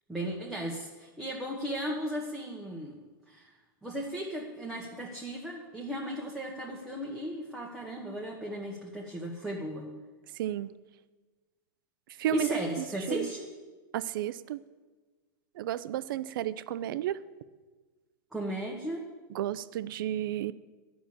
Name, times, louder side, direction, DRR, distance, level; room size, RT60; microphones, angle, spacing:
voice 1, 0.1-3.0 3.3-3.5 3.8-9.9 12.3-13.5 18.3-19.0, right 1 dB, 5° right, -3 dB, 1.2 m, -36 dB
voice 2, 10.4-10.7 12.2-12.5 13.1-13.3 13.9-14.6 15.6-17.2 19.3-20.5, right 13 dB, 70° right, 16 dB, 0.5 m, -32 dB
10.0 x 6.1 x 8.6 m, 1.3 s
supercardioid pair, 135°, 12 cm